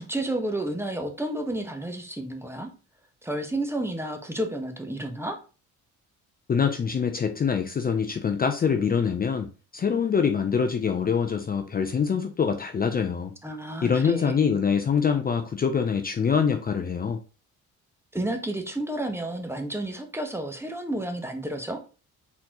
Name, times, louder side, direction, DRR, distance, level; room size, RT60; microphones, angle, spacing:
voice 1, 0.0-2.7 3.2-5.4 13.4-14.4 18.1-21.8, right 1 dB, 10° right, 1.0 m, -31 dB
voice 2, 6.5-13.3 13.8-17.2, left 6 dB, 30° left, 0.5 m, -24 dB
4.1 x 4.0 x 2.9 m
cardioid pair, 90°, 30 cm